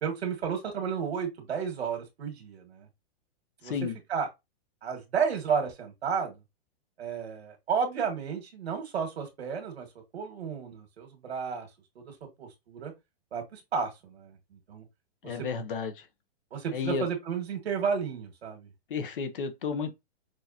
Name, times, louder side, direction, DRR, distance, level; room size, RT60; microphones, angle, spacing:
voice 1, 0.0-2.9 3.6-4.3 4.8-6.4 7.0-9.9 10.1-11.7 12.0-12.9 13.3-14.8 15.2-15.3 16.5-18.7, right 6 dB, 75° right, 1.9 m, -32 dB
voice 2, 3.6-4.0 15.2-16.0 16.7-17.0 18.9-19.9, left 5 dB, 55° left, 1.0 m, -32 dB
6.3 x 2.9 x 2.8 m
hypercardioid pair, 180°, 32 cm